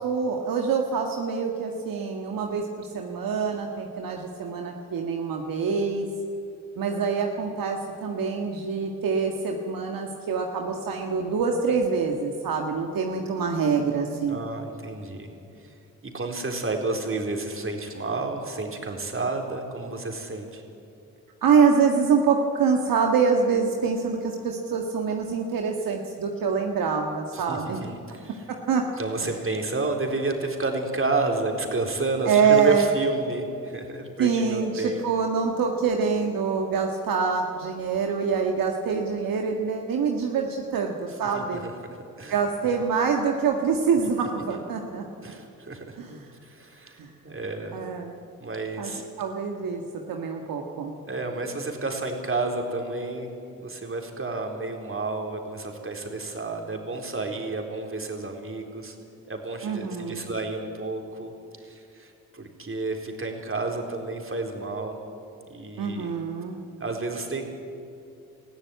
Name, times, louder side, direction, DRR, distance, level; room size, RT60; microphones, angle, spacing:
voice 1, 0.0-6.1 6.8-14.4 21.4-27.8 28.5-28.8 32.2-32.8 34.2-41.6 42.3-45.0 46.0-46.3 47.0-47.3 47.7-48.2 48.8-48.9 49.2-49.8 50.1-50.9 59.6-60.3 65.8-66.6, right 5 dB, 70° right, 2 dB, 1.7 m, -25 dB
voice 2, 14.3-15.3 15.6-15.7 16.0-20.6 27.3-28.4 29.0-35.1 41.3-41.7 42.2-42.4 42.7-42.8 44.5-44.6 45.2-46.0 46.4-47.0 47.2-47.8 48.4-49.0 51.1-53.3 53.6-59.0 59.3-61.3 61.6-65.0 65.5-66.1 66.8-67.5, right 3 dB, 35° right, 2 dB, 4.0 m, -30 dB
20.5 x 14.5 x 9.3 m, 2.7 s
supercardioid pair, 50°, 35 cm